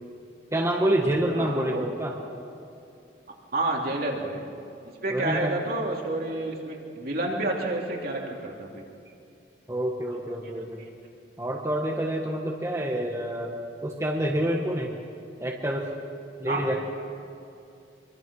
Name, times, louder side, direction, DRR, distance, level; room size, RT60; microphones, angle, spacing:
voice 1, 0.5-2.2 5.1-5.6 9.7-10.8 11.4-13.5 13.8-14.9 15.4-15.9 16.4-16.9, right 1 dB, 15° right, 0 dB, 1.4 m, -27 dB
voice 2, 1.3-1.8 3.5-4.4 5.0-8.8 10.4-10.9 16.5-16.6, right 2 dB, 55° right, -1 dB, 3.2 m, -30 dB
24.5 x 23.5 x 6.3 m, 2.6 s
head